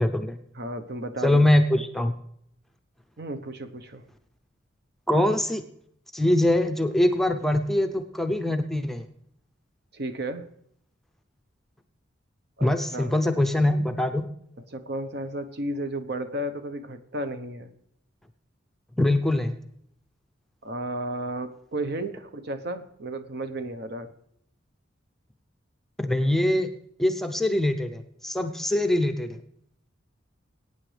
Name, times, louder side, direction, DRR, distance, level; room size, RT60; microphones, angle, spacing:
voice 1, 0.0-0.4 1.2-2.1 5.1-5.6 6.1-9.0 12.6-14.2 19.0-19.6 26.0-26.7 27.0-29.4, left 1 dB, ahead, 6 dB, 0.6 m, -23 dB
voice 2, 0.5-1.4 3.2-4.0 9.9-10.4 12.6-13.1 14.7-17.7 20.6-24.1, right 1 dB, 55° right, 9 dB, 0.9 m, -33 dB
22.0 x 9.0 x 3.3 m, 0.70 s
head